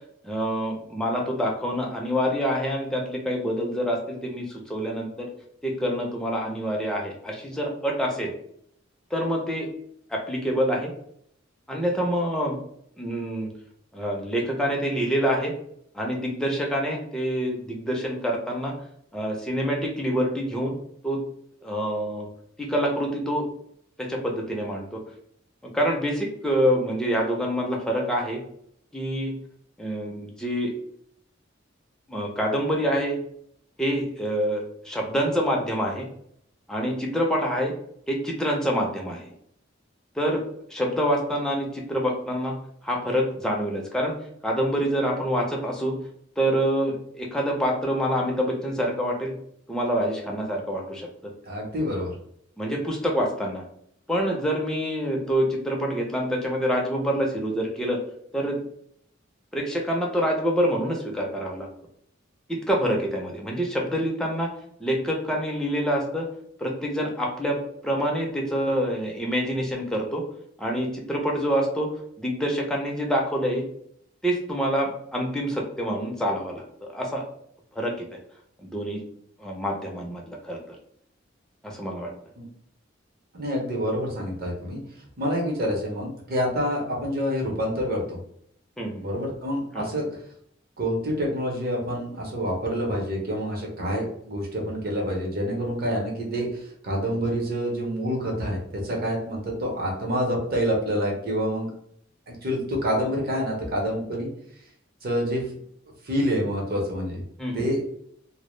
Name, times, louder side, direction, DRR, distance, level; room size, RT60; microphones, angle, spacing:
voice 1, 0.2-5.3 5.6-8.3 9.1-9.7 10.1-10.9 11.7-12.6 13.0-13.5 13.9-15.5 15.9-18.7 19.1-20.7 21.0-21.2 21.6-22.3 22.6-23.5 24.0-25.0 25.6-28.4 28.9-29.4 29.8-30.7 32.1-33.2 33.8-36.1 36.7-37.7 38.1-39.3 40.1-40.4 40.7-44.2 44.4-46.0 46.4-49.3 49.7-51.3 52.6-53.6 54.1-58.0 58.3-58.6 59.5-61.7 62.5-64.5 64.8-66.3 66.6-70.2 70.6-73.6 74.2-77.2 77.7-78.1 78.6-79.0 79.4-80.8 81.6-82.1 88.8-89.1 89.7-89.9 107.4-107.7, equal, 5° left, -1 dB, 0.4 m, -26 dB
voice 2, 51.4-52.1 82.4-82.5 83.3-84.8 85.2-88.2 89.0-90.0 90.8-101.7 102.4-104.3 105.0-105.4 106.0-107.2 107.5-107.8, equal, 50° right, -1 dB, 0.7 m, -27 dB
2.1 x 2.0 x 3.0 m, 0.68 s
head